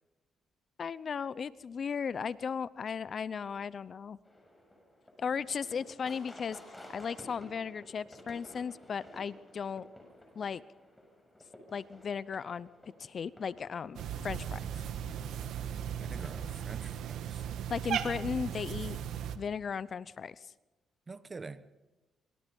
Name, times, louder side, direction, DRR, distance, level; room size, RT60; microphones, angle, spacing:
voice 1, 0.8-4.2 5.2-9.9 10.3-10.6 11.7-12.7 13.0-14.6 17.7-19.0 19.3-20.5, left 6 dB, 50° left, 0.7 m, -36 dB
sound 1, 4.2-16.9, left 1 dB, 10° left, 7.1 m, -54 dB
Cat, 13.9-19.4, right 9 dB, 80° right, 1.6 m, -37 dB
voice 2, 16.0-17.5 21.1-21.6, right 4 dB, 30° right, 1.2 m, -46 dB
25.5 x 25.0 x 5.4 m
cardioid pair, 90°, 0 cm